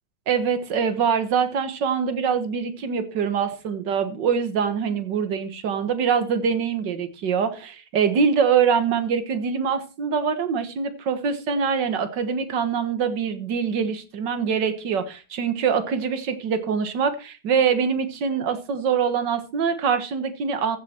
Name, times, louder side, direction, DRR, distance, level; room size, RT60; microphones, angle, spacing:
voice 1, 0.3-20.8, right 6 dB, 60° right, 10 dB, 2.0 m, -24 dB
15.5 x 7.1 x 4.4 m, 0.32 s
omnidirectional pair, 2.3 m